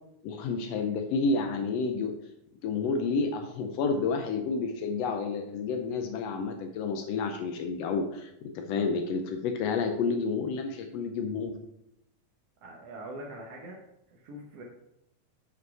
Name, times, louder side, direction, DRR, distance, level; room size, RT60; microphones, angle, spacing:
voice 1, 0.2-2.1 2.6-11.5, left 4 dB, 85° left, 5 dB, 1.4 m, -30 dB
voice 2, 12.6-13.8 14.1-14.6, right 1 dB, 65° right, -2 dB, 1.7 m, -43 dB
7.8 x 5.4 x 4.7 m, 0.81 s
omnidirectional pair, 3.7 m